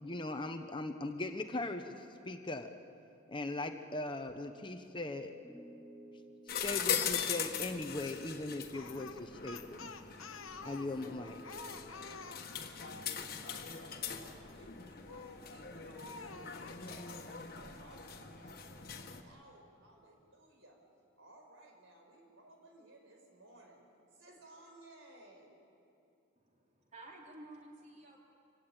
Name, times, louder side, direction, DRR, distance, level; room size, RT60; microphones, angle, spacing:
voice 1, 0.0-2.7 3.3-5.3 6.6-9.9 10.6-11.4, left 2 dB, 25° left, 7 dB, 0.8 m, -39 dB
sound 1, 1.9-3.4 5.4-8.6 11.0-12.3, right 1 dB, 5° right, 3.1 m, -57 dB
sound 2, 6.5-19.2, left 7 dB, 45° left, 1.5 m, -41 dB
Speech, 8.7-13.0 15.1-15.5 15.9-16.8, left 4 dB, 80° left, 1.1 m, -49 dB
voice 2, 13.5-20.8 21.2-23.8 24.1-25.5, right 1 dB, 70° right, 2 dB, 4.8 m, -59 dB
voice 3, 26.4-28.2, right 1 dB, 35° right, -1 dB, 3.5 m, -53 dB
26.0 x 17.0 x 8.9 m, 2.6 s
head